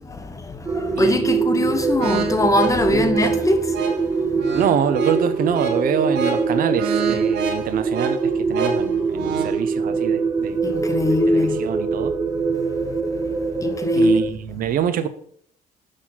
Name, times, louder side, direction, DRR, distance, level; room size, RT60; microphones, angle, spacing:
voice 1, 0.0-3.8 4.4-4.5 10.6-11.6 12.6-13.0 13.4-14.2, left 1 dB, 20° left, 0.9 m, -22 dB
sound 1, 0.6-14.3, right 4 dB, 15° right, 0.7 m, -24 dB
voice 2, 1.0-1.4 2.9-3.2 4.5-10.6 11.1-12.1 13.9-15.1, right 9 dB, 60° right, 0.6 m, -25 dB
sound 2, 2.0-9.6, right 6 dB, 85° right, 1.1 m, -29 dB
6.4 x 5.7 x 3.9 m
cardioid pair, 110°, 17 cm